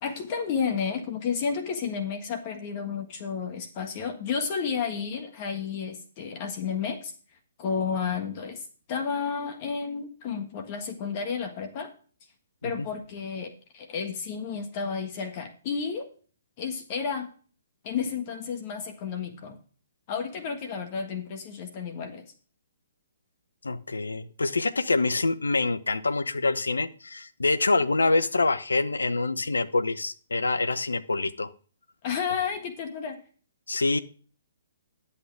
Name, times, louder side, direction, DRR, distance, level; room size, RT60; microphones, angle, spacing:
voice 1, 0.0-7.1 7.6-11.9 12.6-16.1 16.6-17.3 17.8-19.6 20.1-22.3 32.0-33.2, left 6 dB, 40° left, 5 dB, 1.5 m, -31 dB
voice 2, 23.6-31.5 33.7-34.0, left 3 dB, 85° left, 12 dB, 0.7 m, -26 dB
11.0 x 8.3 x 3.4 m, 0.40 s
figure-of-eight pair, 130°, 0 cm